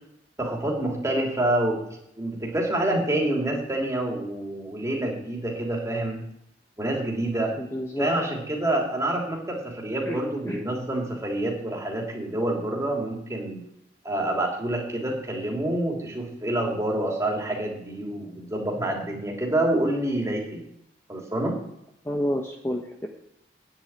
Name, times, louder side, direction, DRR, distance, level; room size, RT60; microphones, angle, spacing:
voice 1, 0.4-1.8 2.2-6.2 6.8-7.5 8.0-13.6 14.0-20.6 21.1-21.5, right 1 dB, 15° right, -1 dB, 3.1 m, -27 dB
voice 2, 7.6-8.1 10.1-10.6 22.0-23.1, equal, 15° left, 2 dB, 1.0 m, -30 dB
9.6 x 8.7 x 8.9 m, 0.77 s
head